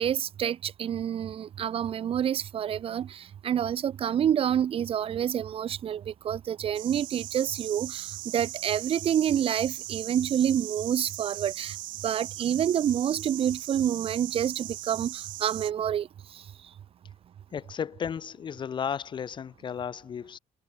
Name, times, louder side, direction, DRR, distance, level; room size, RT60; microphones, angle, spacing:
voice 1, 0.0-11.8 12.0-16.7, right 9 dB, 45° right, 2.8 m, -28 dB
sound 1, 6.7-15.7, right 17 dB, 85° right, 2.9 m, -39 dB
voice 2, 17.5-20.4, left 7 dB, 35° left, 5.6 m, -34 dB
cardioid pair, 155°, 14 cm